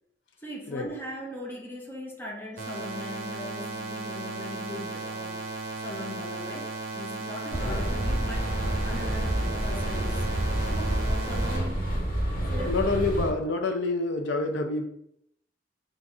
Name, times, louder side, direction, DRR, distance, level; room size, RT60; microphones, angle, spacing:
voice 1, 0.4-5.4 5.8-10.2 10.7-12.7, left 1 dB, 10° left, -1 dB, 0.8 m, -40 dB
sound 1, 2.6-11.6, right 3 dB, 55° right, 0.8 m, -36 dB
sound 2, 7.5-13.3, right 1 dB, 50° left, 1.4 m, -28 dB
voice 2, 12.7-14.8, left 3 dB, 85° left, 5 dB, 0.6 m, -27 dB
3.9 x 2.5 x 4.6 m, 0.74 s
head